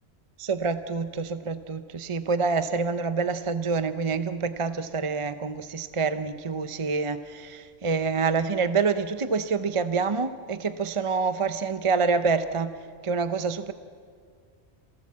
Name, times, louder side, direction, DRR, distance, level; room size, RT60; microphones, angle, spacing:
voice 1, 0.4-12.7 13.0-13.7, right 4 dB, 30° right, 11 dB, 0.7 m, -27 dB
28.0 x 18.0 x 7.5 m, 2.1 s
omnidirectional pair, 1.2 m